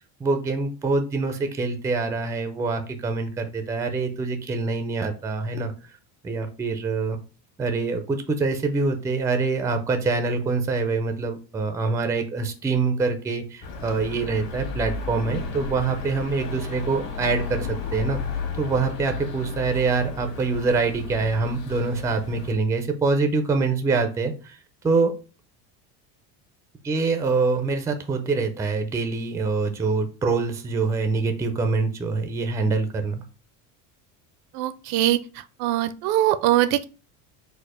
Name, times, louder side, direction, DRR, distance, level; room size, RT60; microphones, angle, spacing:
voice 1, 0.2-5.7 6.2-7.2 7.6-18.2 18.6-24.6 24.8-25.2 26.8-33.2, right 4 dB, 10° right, 0.3 m, -25 dB
sound 1, 13.6-22.5, left 4 dB, 50° left, 1.5 m, -34 dB
voice 2, 34.5-35.2 35.6-36.8, right 13 dB, 70° right, 0.5 m, -21 dB
4.2 x 2.4 x 4.7 m
cardioid pair, 140°, 40 cm